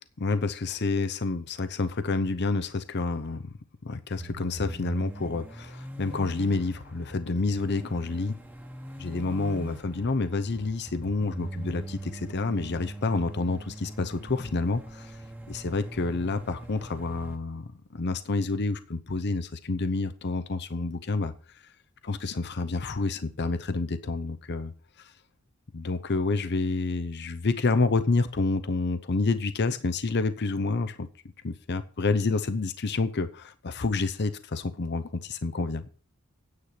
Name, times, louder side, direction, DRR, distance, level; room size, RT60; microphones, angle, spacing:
voice 1, 0.2-3.4 3.8-8.4 9.0-15.2 15.5-21.3 22.0-24.7 25.0-25.1 25.7-31.1 31.4-35.9, left 3 dB, 50° left, 0.7 m, -28 dB
sound 1, 4.2-17.4, right 1 dB, 10° right, 1.3 m, -41 dB
9.7 x 8.2 x 5.8 m
head